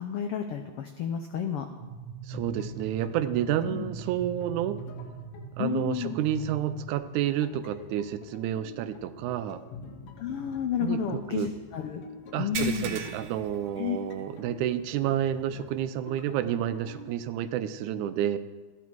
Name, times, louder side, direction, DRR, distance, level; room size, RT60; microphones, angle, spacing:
voice 1, 0.0-1.7 3.7-3.9 5.6-6.2 10.2-12.0 12.4-13.0 13.8-14.0, left 8 dB, 90° left, 6 dB, 1.2 m, -31 dB
sound 1, 1.8-6.9, right 6 dB, 45° right, 1.8 m, -41 dB
voice 2, 2.2-4.8 5.6-9.6 10.8-11.5 12.3-18.4, right 10 dB, 85° right, 12 dB, 2.1 m, -30 dB
sound 2, 2.3-17.1, left 3 dB, 70° left, 2.2 m, -48 dB
sound 3, 12.5-14.4 14.8-15.0 15.5-15.6 17.2-17.3, right 6 dB, 65° right, 1.3 m, -38 dB
13.5 x 9.9 x 4.6 m, 1.3 s
omnidirectional pair, 3.4 m